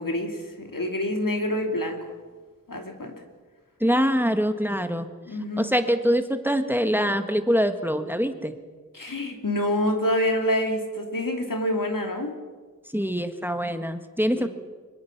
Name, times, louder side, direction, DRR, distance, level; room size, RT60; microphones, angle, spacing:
voice 1, 0.0-2.1 2.7-3.1 5.3-5.8 8.9-12.4 14.3-14.5, left 1 dB, 80° left, 3 dB, 2.9 m, -27 dB
voice 2, 3.8-5.1 5.6-8.6 12.9-14.5, equal, 5° right, 8 dB, 1.6 m, -24 dB
24.5 x 21.5 x 6.0 m, 1.4 s
wide cardioid pair, 40°, 33 cm